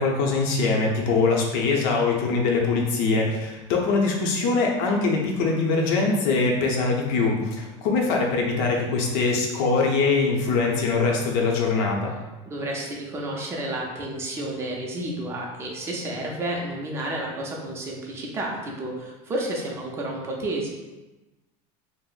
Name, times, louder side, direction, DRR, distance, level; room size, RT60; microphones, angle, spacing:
voice 1, 0.0-12.1, left 4 dB, 65° left, 0 dB, 0.7 m, -23 dB
voice 2, 12.4-20.7, right 1 dB, 15° right, -1 dB, 0.5 m, -31 dB
2.5 x 2.0 x 3.8 m, 1.1 s
cardioid pair, 155°, 17 cm